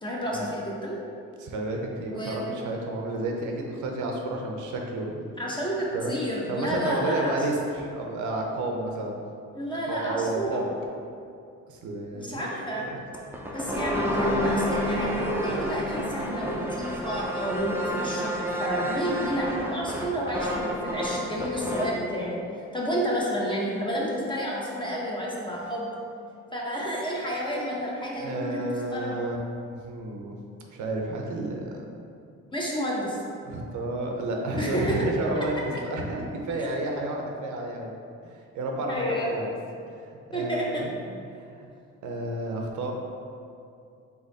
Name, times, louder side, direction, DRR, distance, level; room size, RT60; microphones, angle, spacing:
voice 1, 0.0-1.0 2.1-2.4 5.4-7.4 9.6-10.7 12.1-12.9 13.5-22.4 22.7-25.9 26.5-28.6 28.9-29.2 32.5-33.2 34.6-35.0 38.9-39.3 40.3-40.8, equal, 15° left, -4 dB, 0.9 m, -30 dB
voice 2, 1.4-5.3 5.9-6.2 6.5-9.2 9.9-10.7 11.7-12.5 12.9-13.0 28.2-29.4 29.7-30.4 30.7-32.0 33.4-37.9 38.2-39.6 40.0-41.0 41.4-41.7 42.0-42.9, right 2 dB, 75° right, 1 dB, 0.6 m, -31 dB
sound 1, 13.1-22.0, equal, 5° right, 0.5 m, -29 dB
4.1 x 2.8 x 3.9 m, 2.5 s
cardioid pair, 90°, 30 cm